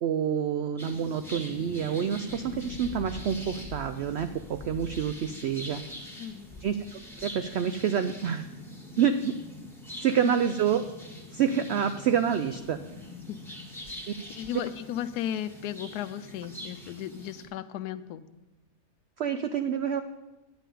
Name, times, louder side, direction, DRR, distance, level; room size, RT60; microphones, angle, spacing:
voice 1, 0.0-5.8 6.6-8.4 9.0-9.3 10.0-10.8 11.3-12.8 19.2-20.0, right 8 dB, 80° right, 9 dB, 0.5 m, -27 dB
sound 1, 0.8-17.4, left 1 dB, ahead, 1.6 m, -43 dB
voice 2, 6.2-6.6 10.2-10.3 13.3-13.4 13.9-18.2, left 11 dB, 80° left, 11 dB, 1.1 m, -35 dB
9.9 x 5.6 x 8.4 m, 1.1 s
omnidirectional pair, 1.6 m